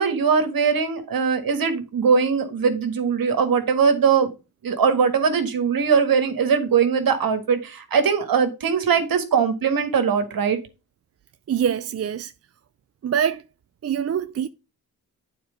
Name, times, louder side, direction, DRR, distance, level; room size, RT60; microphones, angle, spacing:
voice 1, 0.0-4.3 4.6-10.6, right 6 dB, 70° right, 1.8 m, -21 dB
voice 2, 11.5-12.3 13.0-13.4 13.8-14.5, right 8 dB, 40° right, 0.5 m, -24 dB
8.9 x 4.5 x 5.1 m
cardioid pair, 60°, 37 cm